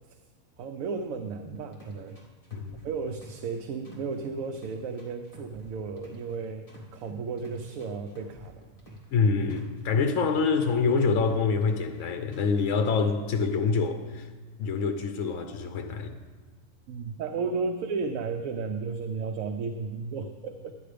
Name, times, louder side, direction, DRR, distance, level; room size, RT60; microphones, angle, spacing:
voice 1, 0.6-2.2 2.8-8.6 16.9-20.7, right 4 dB, 80° right, 1.0 m, -34 dB
sound 1, 1.4-3.5 3.8-6.3 6.7-9.2 9.5-12.0 12.3-12.7, equal, 25° left, 2.1 m, -48 dB
voice 2, 2.5-2.8 9.1-14.3 14.6-16.2, left 4 dB, 70° left, 1.1 m, -26 dB
11.0 x 9.5 x 5.1 m
omnidirectional pair, 1.4 m